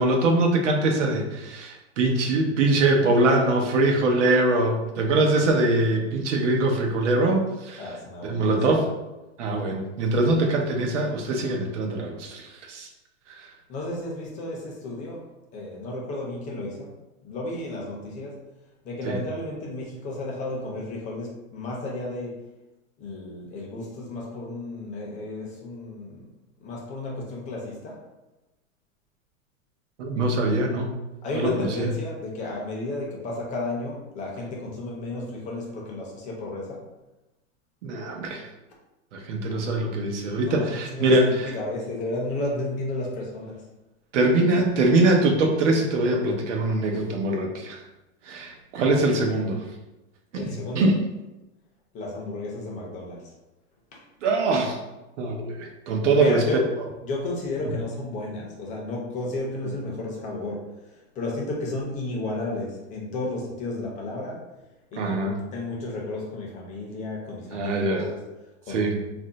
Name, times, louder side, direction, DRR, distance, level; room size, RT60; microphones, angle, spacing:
voice 1, 0.0-7.8 8.2-8.8 9.4-12.9 13.4-13.5 19.0-19.2 30.0-30.9 31.3-31.9 37.8-38.5 39.1-41.5 44.1-47.8 48.2-49.6 50.3-51.0 54.2-54.8 55.2-56.5 65.0-65.4 67.5-68.0 68.7-69.0, right 2 dB, 85° right, 2 dB, 0.8 m, -23 dB
voice 2, 7.8-8.6 13.7-15.2 15.5-16.9 17.2-18.4 18.8-22.4 23.0-26.3 26.6-28.0 31.2-36.8 40.4-41.2 41.4-43.6 50.3-50.9 51.9-53.3 53.9-54.0 56.1-56.6 57.0-64.5 64.9-68.2 68.7-69.0, left 2 dB, 20° left, -2 dB, 0.5 m, -33 dB
2.5 x 2.1 x 3.8 m, 1.0 s
supercardioid pair, 145°, 35 cm